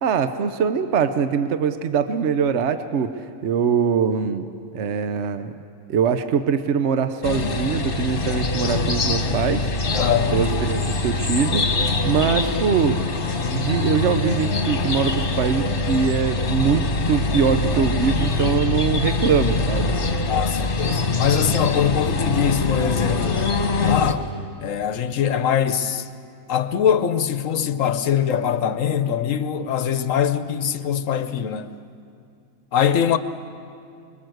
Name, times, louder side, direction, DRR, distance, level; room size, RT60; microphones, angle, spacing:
voice 1, 0.0-4.4 4.7-5.5 5.9-9.7 10.3-11.6 12.0-20.3, right 6 dB, 60° right, 1.0 m, -23 dB
sound 1, 7.2-24.1, left 3 dB, 40° left, 1.4 m, -23 dB
voice 2, 9.9-10.4 20.3-23.6 23.8-24.3 24.6-26.1 26.5-31.7 32.7-33.2, left 8 dB, 70° left, 1.1 m, -22 dB
25.0 x 22.5 x 7.9 m
omnidirectional pair, 1.5 m